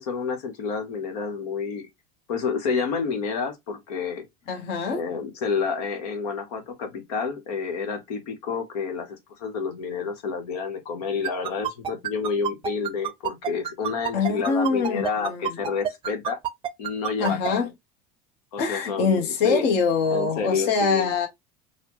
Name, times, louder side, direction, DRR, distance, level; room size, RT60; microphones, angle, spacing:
voice 1, 0.0-1.9 2.3-4.3 4.9-16.4 16.8-17.7 18.5-19.7 20.1-21.1, left 5 dB, 90° left, 1.1 m, -29 dB
voice 2, 4.5-5.2 14.1-15.6 17.2-17.7 18.6-21.3, left 5 dB, 60° left, 1.0 m, -24 dB
sound 1, 11.2-17.5, right 10 dB, 25° right, 0.5 m, -28 dB
4.1 x 2.2 x 3.0 m
supercardioid pair, 125°, 19 cm